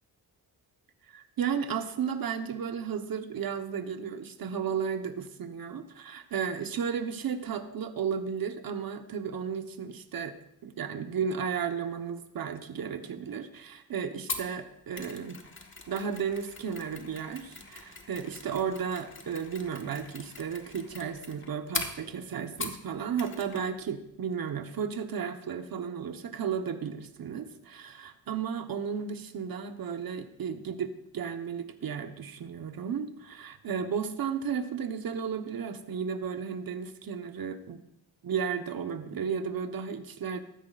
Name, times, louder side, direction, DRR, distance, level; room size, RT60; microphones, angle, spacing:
voice 1, 1.1-10.4 10.6-15.4 15.9-37.8 38.2-40.4, right 7 dB, 65° right, 7 dB, 1.2 m, -34 dB
Mechanisms, 14.3-22.9 23.2-23.6 23.9-24.0, left 4 dB, 30° left, 1.5 m, -41 dB
15.5 x 13.0 x 2.6 m, 0.77 s
cardioid pair, 105°, 38 cm